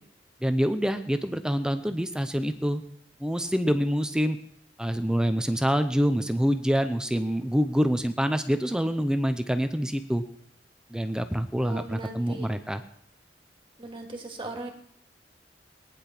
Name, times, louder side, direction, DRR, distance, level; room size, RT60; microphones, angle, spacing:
voice 1, 0.4-2.8 3.2-4.4 4.8-10.2 10.9-12.8, equal, 5° right, 9 dB, 0.7 m, -26 dB
voice 2, 11.6-12.5 13.8-14.7, right 2 dB, 30° right, 2 dB, 2.5 m, -38 dB
19.5 x 10.0 x 6.0 m, 0.68 s
head